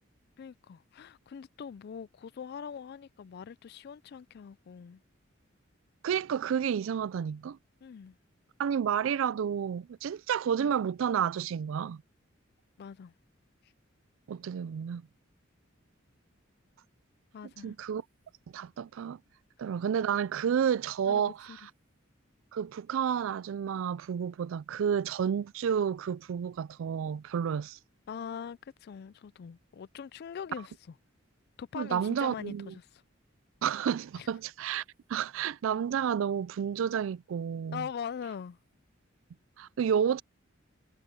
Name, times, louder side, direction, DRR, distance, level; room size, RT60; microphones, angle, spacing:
voice 1, 0.4-5.0 7.8-8.2 12.8-13.1 13.6-13.7 17.3-17.8 21.1-21.6 28.1-30.9 31.6-33.0 34.2-34.3 37.7-38.6, left 7 dB, 50° left, 0.3 m, -42 dB
voice 2, 6.0-7.6 8.6-12.0 14.3-15.0 17.6-18.0 18.5-19.2 19.6-21.5 22.5-27.8 31.7-32.7 33.6-34.8 35.1-37.9 39.6-40.2, right 8 dB, 70° right, 0.3 m, -30 dB
head